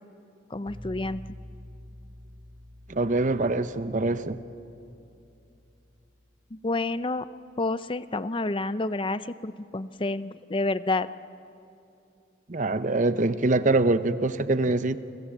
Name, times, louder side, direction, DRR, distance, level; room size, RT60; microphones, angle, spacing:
voice 1, 0.5-1.2 6.5-7.3 7.6-11.1, left 2 dB, 25° left, 14 dB, 0.6 m, -29 dB
sound 1, 0.7-6.4, left 1 dB, 15° right, 2.9 m, -48 dB
voice 2, 2.9-4.4 12.5-15.0, right 2 dB, 40° right, 12 dB, 0.8 m, -24 dB
30.0 x 26.0 x 7.5 m, 2.7 s
head